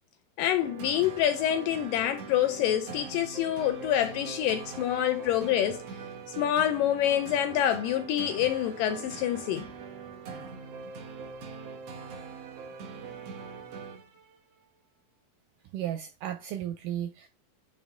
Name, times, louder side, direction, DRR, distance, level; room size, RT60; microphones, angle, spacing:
voice 1, 0.4-5.8 6.4-9.7, left 11 dB, 80° left, 2.0 m, -27 dB
sound 1, 0.6-14.4, right 5 dB, 65° right, 1.6 m, -43 dB
voice 2, 15.7-17.3, right 11 dB, 80° right, 1.9 m, -34 dB
9.1 x 3.3 x 3.6 m
omnidirectional pair, 4.3 m